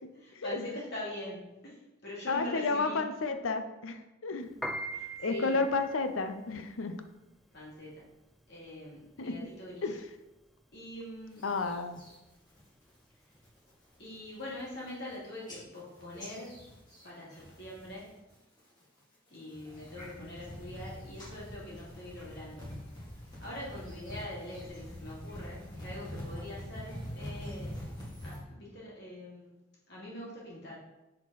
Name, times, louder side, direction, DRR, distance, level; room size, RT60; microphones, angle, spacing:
voice 1, 0.1-3.0 4.9-5.6 7.5-8.0 8.5-9.9 10.7-11.5 14.0-16.5 17.0-18.1 19.3-23.1 23.4-27.9 28.2-29.5 29.9-30.8, left 1 dB, 55° left, -5 dB, 2.5 m, -43 dB
voice 2, 2.3-4.5 5.2-7.0 9.2-9.3 9.8-10.0 11.4-12.0, left 3 dB, 85° left, 8 dB, 0.6 m, -31 dB
Piano, 4.5-14.9, right 1 dB, ahead, 0.4 m, -44 dB
sound 1, 11.3-12.2 12.6-12.9 13.3-13.7 14.1-14.2 14.5-15.1 15.5-18.0 18.3-18.8 19.3-28.4, equal, 20° left, 2.3 m, -45 dB
7.3 x 4.4 x 4.0 m, 0.99 s
head